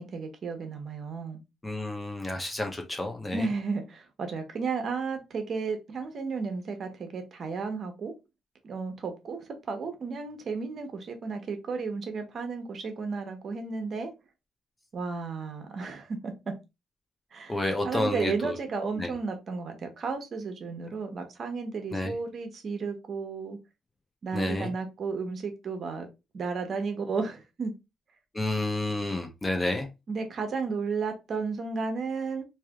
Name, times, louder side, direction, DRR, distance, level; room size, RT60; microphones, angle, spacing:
voice 1, 0.0-1.4 3.3-8.1 8.6-9.4 9.7-14.1 14.9-16.5 17.3-23.6 24.2-26.1 26.3-27.7 30.1-32.5, right 4 dB, 50° right, 1.0 m, -33 dB
voice 2, 1.6-3.5 17.5-18.5 18.9-19.1 21.9-22.1 24.3-24.7 28.3-29.9, left 2 dB, 20° left, 0.9 m, -30 dB
3.2 x 3.0 x 3.5 m
cardioid pair, 90°, 0 cm